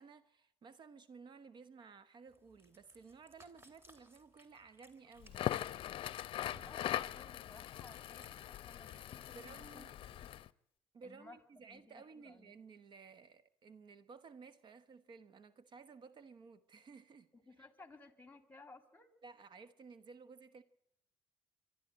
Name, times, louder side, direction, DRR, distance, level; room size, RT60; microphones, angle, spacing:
voice 1, 0.0-5.4 9.3-9.9 10.9-17.3 19.2-20.6, right 5 dB, 45° right, 1.1 m, -56 dB
Cat, 2.3-10.5, right 1 dB, 20° right, 3.0 m, -66 dB
Crackle, 5.2-10.5, left 12 dB, 55° left, 0.7 m, -41 dB
voice 2, 6.7-10.4 11.0-12.5 17.3-19.1, left 3 dB, 15° left, 2.4 m, -59 dB
25.0 x 12.0 x 8.7 m
supercardioid pair, 85°, 11 cm